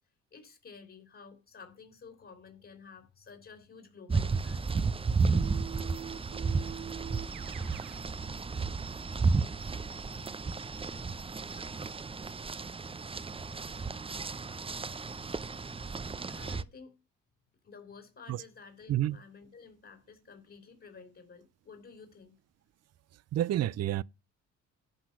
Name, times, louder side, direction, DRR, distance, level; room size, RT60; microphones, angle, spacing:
voice 1, 0.3-4.6 16.3-16.9 17.6-22.4, left 5 dB, 45° left, 3.4 m, -52 dB
sound 1, 4.1-16.6, right 4 dB, 20° right, 0.6 m, -33 dB
Keyboard (musical), 5.3-8.1, right 10 dB, 80° right, 1.1 m, -44 dB
voice 2, 23.3-24.0, right 13 dB, 55° right, 0.6 m, -29 dB
11.5 x 5.9 x 5.9 m
cardioid pair, 90°, 30 cm